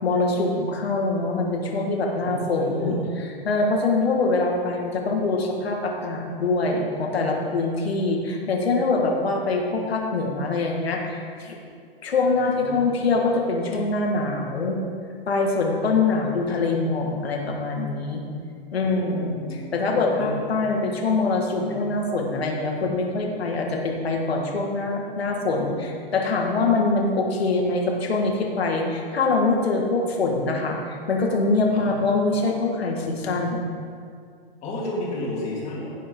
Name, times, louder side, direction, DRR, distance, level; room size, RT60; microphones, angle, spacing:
voice 1, 0.0-3.0 3.4-11.6 12.0-14.8 15.3-18.2 18.7-33.7, left 3 dB, 85° left, 1 dB, 2.3 m, -24 dB
voice 2, 2.2-3.0 12.3-12.8 18.8-19.8 20.2-20.4 23.3-23.5 31.7-32.0 34.6-35.9, left 1 dB, 20° left, -4 dB, 2.5 m, -33 dB
16.5 x 7.7 x 3.9 m, 2.2 s
hypercardioid pair, 155°, 30 cm